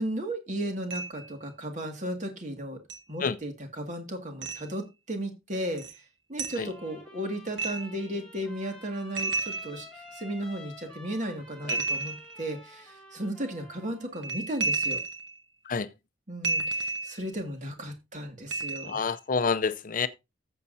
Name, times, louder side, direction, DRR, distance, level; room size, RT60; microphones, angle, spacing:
voice 1, 0.0-2.8 3.1-5.8 6.3-15.0 16.3-19.0, right 1 dB, 40° right, 2.1 m, -35 dB
sound 1, 0.9-1.3 2.9-3.0 4.4-4.6 5.8-6.0 6.4-6.7 7.6-8.0 9.2-10.2 11.7-12.5 14.1-15.4 16.4-17.3 18.5-19.0, right 3 dB, 70° right, 1.2 m, -32 dB
Trumpet, 6.5-14.1, left 1 dB, 5° left, 3.6 m, -50 dB
voice 2, 18.8-20.1, left 5 dB, 45° left, 0.6 m, -28 dB
14.0 x 7.3 x 2.7 m
head